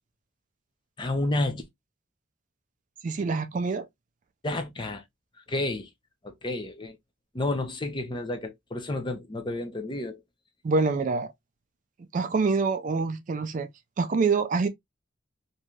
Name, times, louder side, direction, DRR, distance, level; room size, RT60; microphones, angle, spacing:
voice 1, 1.0-1.6 4.4-5.0 5.5-5.9 6.2-7.0 7.3-10.2, left 2 dB, 25° left, 0.5 m, -30 dB
voice 2, 3.0-3.9 10.6-11.3 12.1-13.7 14.0-14.7, right 4 dB, 40° right, 0.3 m, -25 dB
3.1 x 2.6 x 2.3 m
head